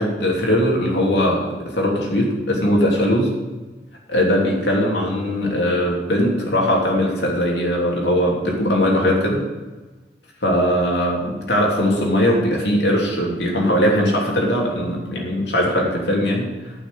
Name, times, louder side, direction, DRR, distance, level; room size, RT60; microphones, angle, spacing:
voice 1, 0.0-3.3 4.1-9.4 10.4-16.7, equal, 80° left, -2 dB, 3.1 m, -20 dB
11.5 x 6.2 x 7.8 m, 1.2 s
head